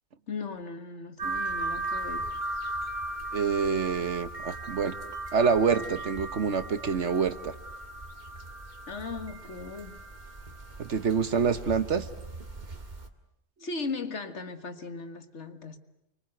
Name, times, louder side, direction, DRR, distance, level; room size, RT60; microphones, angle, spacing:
voice 1, 0.3-2.4 8.9-10.0 13.6-15.8, left 4 dB, 70° left, 2.0 m, -37 dB
sound 1, 1.2-13.1, right 2 dB, 40° right, 2.0 m, -37 dB
voice 2, 3.3-5.0 5.3-7.5 10.8-12.1, right 6 dB, 75° right, 1.6 m, -26 dB
30.0 x 24.5 x 8.0 m
omnidirectional pair, 1.2 m